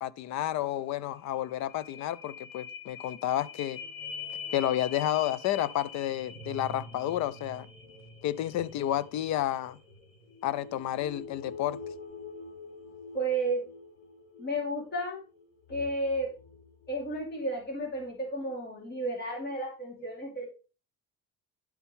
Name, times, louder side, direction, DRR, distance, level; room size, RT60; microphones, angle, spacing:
voice 1, 0.0-3.8 4.5-7.7 8.2-9.8 10.4-11.8, left 12 dB, 65° left, 0.5 m, -31 dB
sound 1, 1.3-17.2 17.7-17.8, left 4 dB, 90° left, 3.5 m, -45 dB
voice 2, 13.1-13.7 14.4-15.2 15.7-16.3 16.9-20.5, right 1 dB, 30° left, 2.8 m, -32 dB
11.0 x 4.4 x 3.5 m
cardioid pair, 130°, 31 cm